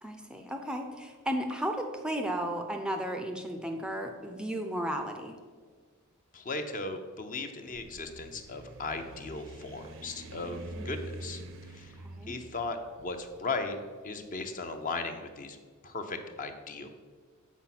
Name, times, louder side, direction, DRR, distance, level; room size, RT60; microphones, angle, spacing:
voice 1, 0.0-5.4 10.8-10.9 12.0-12.3, right 1 dB, 5° right, 4 dB, 0.5 m, -34 dB
voice 2, 6.3-11.4 11.7-11.9 12.3-13.8 14.0-15.6 15.8-16.9, left 3 dB, 40° left, 6 dB, 0.6 m, -37 dB
sound 1, 7.6-14.8, right 2 dB, 65° right, 0.6 m, -46 dB
7.2 x 4.7 x 5.9 m, 1.5 s
head